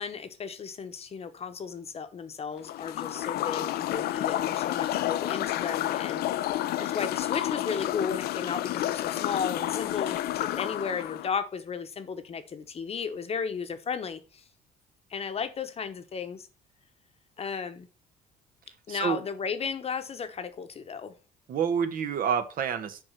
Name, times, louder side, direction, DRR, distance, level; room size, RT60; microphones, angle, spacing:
voice 1, 0.0-14.4 15.1-16.5 17.4-17.9 18.9-21.1, left 6 dB, 35° left, 1.0 m, -34 dB
sound 1, 2.6-11.3, left 14 dB, 70° left, 0.5 m, -30 dB
voice 2, 18.9-19.2 21.5-23.0, right 7 dB, 60° right, 1.1 m, -28 dB
7.3 x 4.6 x 5.7 m
cardioid pair, 110°, 17 cm